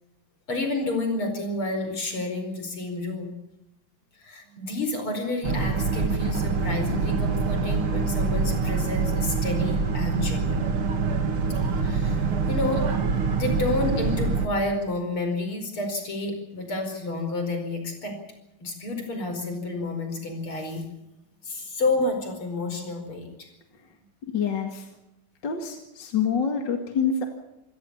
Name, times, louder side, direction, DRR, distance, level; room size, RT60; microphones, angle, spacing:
voice 1, 0.5-3.3 4.2-10.6 11.8-12.8 13.3-18.1 18.6-20.8 21.4-23.5, left 2 dB, 85° left, 5 dB, 5.7 m, -30 dB
Boat Water vehicle, 5.4-14.5, right 4 dB, 80° right, 2.9 m, -25 dB
voice 2, 24.3-24.9 25.4-27.3, left 6 dB, 60° left, 4 dB, 2.6 m, -26 dB
27.0 x 17.0 x 7.1 m, 0.91 s
omnidirectional pair, 2.3 m